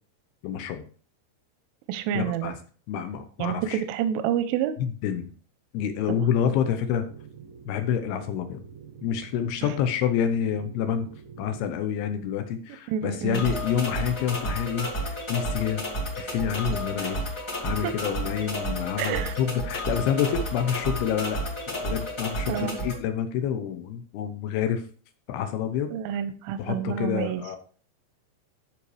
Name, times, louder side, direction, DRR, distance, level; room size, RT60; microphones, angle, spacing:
voice 1, 0.4-0.8 2.1-2.6 2.9-3.8 4.8-5.3 5.7-7.1 7.7-8.6 9.0-11.1 11.4-15.8 16.2-17.2 17.6-24.8 25.3-25.9 26.6-27.6, left 8 dB, 80° left, 8 dB, 2.3 m, -28 dB
voice 2, 1.9-2.6 3.4-4.8 12.9-13.5 17.8-17.9 19.0-19.3 22.5-22.8 25.9-27.4, right 10 dB, 85° right, 9 dB, 3.1 m, -28 dB
sound 1, 5.7-11.8, right 6 dB, 60° right, 1.6 m, -47 dB
sound 2, 13.3-22.9, equal, 55° left, 1.0 m, -31 dB
13.5 x 5.7 x 3.2 m, 0.42 s
omnidirectional pair, 5.5 m